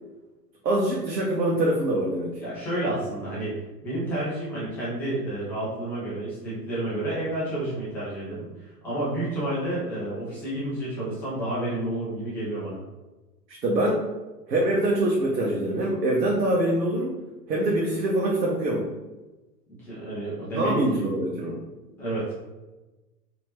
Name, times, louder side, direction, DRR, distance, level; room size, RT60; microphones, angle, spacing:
voice 1, 0.6-2.4 13.6-14.1 14.5-17.2 17.5-18.9 20.5-21.6, right 1 dB, 75° right, -2 dB, 0.8 m, -24 dB
voice 2, 2.4-3.6 3.8-12.8 19.8-21.1 22.0-22.3, right 1 dB, 5° left, -10 dB, 0.3 m, -30 dB
4.1 x 2.7 x 3.1 m, 1.1 s
figure-of-eight pair, 100°, 49 cm